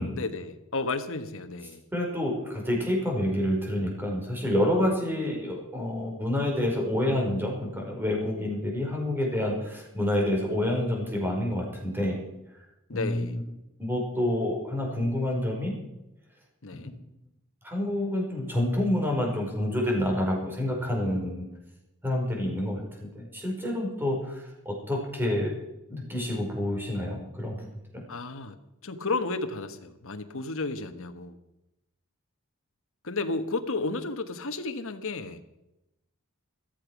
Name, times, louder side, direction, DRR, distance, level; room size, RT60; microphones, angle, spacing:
voice 1, 0.0-1.8 12.9-13.4 16.6-17.0 28.1-31.4 33.0-35.4, left 3 dB, 65° left, 8 dB, 1.4 m, -33 dB
voice 2, 1.9-12.2 12.9-13.4 13.8-15.8 17.6-21.5 22.0-25.5 25.9-27.7 27.9-28.0, left 1 dB, 10° right, 0 dB, 5.1 m, -28 dB
14.5 x 13.5 x 6.1 m, 0.92 s
head